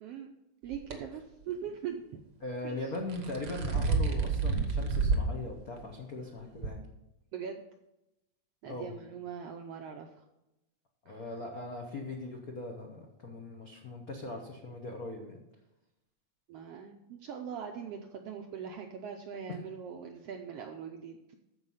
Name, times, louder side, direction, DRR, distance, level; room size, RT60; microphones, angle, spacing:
voice 1, 0.0-0.3 0.6-2.2 2.6-2.9 3.7-3.8 7.3-7.6 8.6-10.2 11.1-11.2 16.5-21.3, right 7 dB, 75° right, 4 dB, 1.4 m, -41 dB
sound 1, 0.7-1.0 2.9-5.3 5.8-5.9 6.6-6.7, right 4 dB, 55° right, 1.1 m, -29 dB
voice 2, 2.4-6.8 8.7-9.0 11.0-15.4, left 2 dB, 70° left, 0 dB, 0.8 m, -40 dB
13.0 x 4.8 x 5.6 m, 0.90 s
omnidirectional pair, 3.4 m